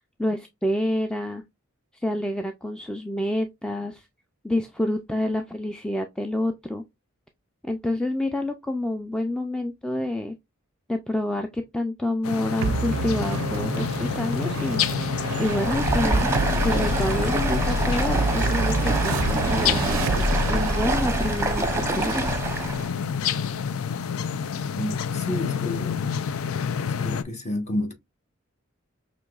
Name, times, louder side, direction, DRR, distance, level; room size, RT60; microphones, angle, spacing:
voice 1, 0.2-1.4 1.9-4.1 4.4-6.8 7.6-10.3 10.9-16.3 16.6-22.2, left 1 dB, 5° left, 0.3 m, -28 dB
sound 1, 12.2-27.2, left 7 dB, 75° left, 0.4 m, -29 dB
sound 2, 12.6-23.4, right 3 dB, 70° right, 0.4 m, -29 dB
Stream, 15.3-22.9, right 2 dB, 10° right, 0.8 m, -26 dB
voice 2, 24.7-26.1 27.0-27.9, left 1 dB, 30° left, 1.2 m, -30 dB
6.0 x 3.0 x 2.3 m
head